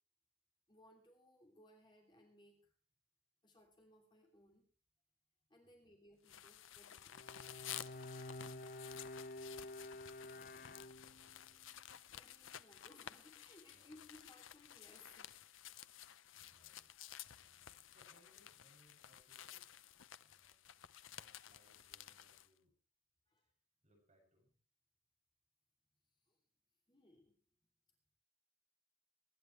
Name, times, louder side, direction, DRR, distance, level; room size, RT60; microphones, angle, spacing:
voice 1, 0.7-2.7 3.4-4.7 5.5-7.1 12.1-15.3 23.3-23.5 26.2-26.4 26.9-27.3, left 1 dB, 25° left, 1 dB, 2.9 m, -64 dB
voice 2, 5.6-6.0 11.0-11.8 13.7-14.1 16.3-19.7 20.2-20.7 21.0-22.8 23.4-23.5 23.8-24.5, equal, 35° right, -1 dB, 7.4 m, -74 dB
sound 1, 6.3-22.5, left 11 dB, 80° left, 0.7 m, -54 dB
Bowed string instrument, 7.1-11.5, left 1 dB, 45° left, 0.8 m, -50 dB
24.0 x 11.0 x 3.2 m, 0.38 s
head